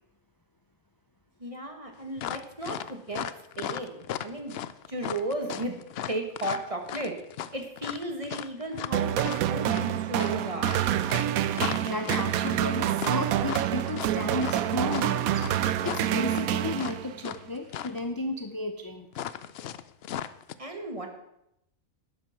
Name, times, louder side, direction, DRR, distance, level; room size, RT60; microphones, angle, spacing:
voice 1, 1.4-3.2 3.6-4.6 4.9-5.8 6.1-7.1 7.5-9.2 9.5-10.8 20.6-21.1, right 1 dB, 25° right, 4 dB, 1.8 m, -34 dB
sound 1, 2.2-17.4 17.7-18.0 19.1-20.5, left 10 dB, 65° left, 0.6 m, -36 dB
sound 2, 8.9-17.3, right 11 dB, 90° right, 1.1 m, -27 dB
voice 2, 11.8-15.4 15.8-19.1, left 2 dB, 25° left, 6 dB, 0.5 m, -33 dB
12.0 x 8.9 x 5.9 m, 0.80 s
omnidirectional pair, 1.5 m